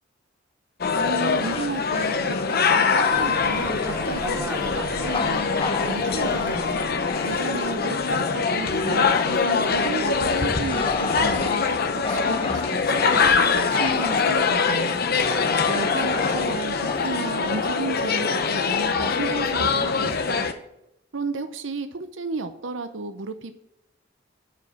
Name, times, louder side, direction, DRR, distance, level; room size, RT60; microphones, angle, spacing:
sound 1, 0.8-20.5, left 5 dB, 55° left, 0.8 m, -23 dB
voice 1, 0.9-6.9 7.3-11.7 12.1-15.0 15.6-20.5 21.1-23.5, right 3 dB, 75° right, 0.7 m, -33 dB
Bark / Growling, 1.4-7.9 8.4-20.3, left 4 dB, 30° left, 0.5 m, -33 dB
sound 2, 3.1-8.5, right 1 dB, 10° right, 0.9 m, -37 dB
9.1 x 5.1 x 5.9 m
head